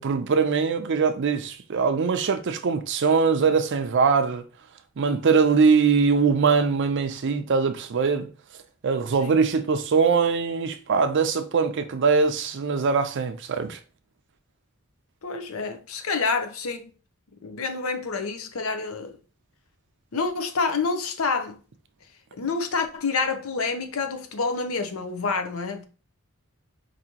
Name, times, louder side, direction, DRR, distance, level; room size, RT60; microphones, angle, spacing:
voice 1, 0.0-4.4 5.0-8.3 8.8-13.8, right 5 dB, 60° right, 0.5 m, -22 dB
voice 2, 15.2-16.9 17.4-19.1 20.1-21.6 22.4-25.8, left 4 dB, 70° left, 0.7 m, -28 dB
4.9 x 2.7 x 2.8 m
head